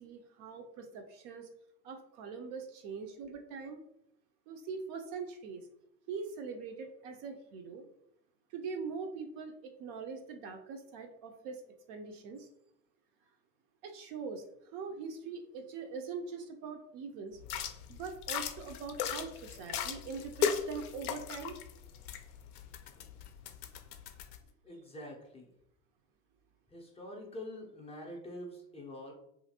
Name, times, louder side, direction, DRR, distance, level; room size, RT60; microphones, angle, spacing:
voice 1, 0.0-1.5 1.8-3.8 4.5-5.7 6.1-7.8 8.5-11.6 11.9-12.5 13.8-17.4 17.9-21.6, right 5 dB, 45° right, 5 dB, 0.4 m, -42 dB
sound 1, 17.4-24.4, left 8 dB, 75° left, 0.5 m, -38 dB
voice 2, 24.6-25.5 26.7-29.1, left 1 dB, 15° left, -1 dB, 0.4 m, -45 dB
2.8 x 2.5 x 2.7 m, 0.79 s
hypercardioid pair, 80°, 46 cm